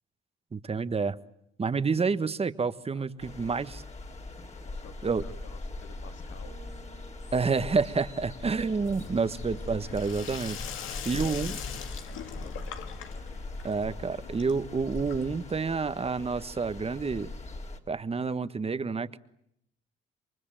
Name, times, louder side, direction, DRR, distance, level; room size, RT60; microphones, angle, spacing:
voice 1, 0.5-1.2 1.6-3.8 5.0-5.2 7.3-10.6 11.1-11.5 13.6-17.3 17.9-19.2, right 4 dB, 30° right, 12 dB, 1.4 m, -29 dB
voice 2, 2.9-3.6 4.6-6.6 10.7-13.2, left 7 dB, 70° left, 5 dB, 2.9 m, -52 dB
sound 1, 3.2-17.8, left 2 dB, 35° left, 3.4 m, -41 dB
Bass guitar, 6.4-8.8, right 5 dB, 80° right, 4.5 m, -56 dB
Sink (filling or washing), 8.8-15.5, left 8 dB, 85° left, 2.3 m, -42 dB
27.5 x 24.0 x 9.0 m, 0.75 s
cardioid pair, 90°, 20 cm